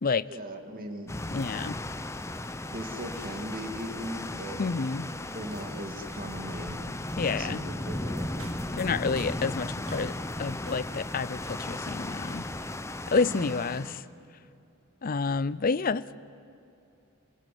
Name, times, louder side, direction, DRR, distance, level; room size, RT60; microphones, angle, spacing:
voice 1, 0.3-1.1 2.7-4.6 5.3-6.8 7.3-8.3 13.2-13.6, equal, 45° right, 4 dB, 2.4 m, -38 dB
sound 1, 1.1-14.0, left 1 dB, 15° left, 0.8 m, -36 dB
voice 2, 1.3-1.8 4.6-5.1 7.2-7.6 8.7-10.1 10.4-12.4 13.1-14.0 15.0-16.2, left 4 dB, 45° left, 18 dB, 0.5 m, -29 dB
sound 2, 8.4-10.3 10.6-11.1 11.4-11.8 12.2-12.7 13.2-13.6, right 4 dB, 85° right, 2.1 m, -52 dB
28.5 x 18.0 x 9.3 m, 2.8 s
head